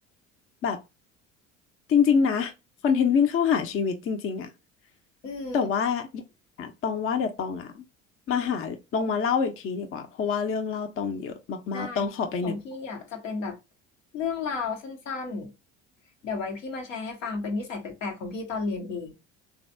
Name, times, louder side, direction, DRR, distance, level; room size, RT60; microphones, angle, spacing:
voice 1, 1.9-2.5 2.8-4.5 5.5-6.2 6.6-7.8 8.3-12.6, left 6 dB, 35° left, 0.7 m, -26 dB
voice 2, 5.2-5.7 11.7-12.1 12.4-13.6 14.1-15.5 16.2-19.1, left 4 dB, 85° left, 1.1 m, -33 dB
3.3 x 2.4 x 2.5 m
hypercardioid pair, 70°, 37 cm